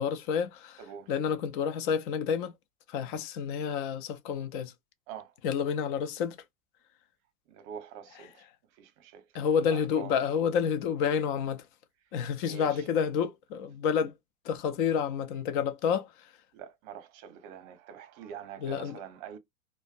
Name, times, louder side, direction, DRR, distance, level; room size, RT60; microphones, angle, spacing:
voice 1, 0.0-0.8 1.1-2.5 2.9-4.7 5.4-6.4 9.3-11.6 12.1-14.1 14.5-16.1 18.6-19.0, left 7 dB, 35° left, 0.5 m, -29 dB
voice 2, 0.8-1.1 5.1-5.3 7.5-8.4 8.8-10.1 12.4-12.8 16.5-19.4, right 8 dB, 40° right, 0.8 m, -45 dB
2.5 x 2.2 x 2.4 m
figure-of-eight pair, 95°, 44 cm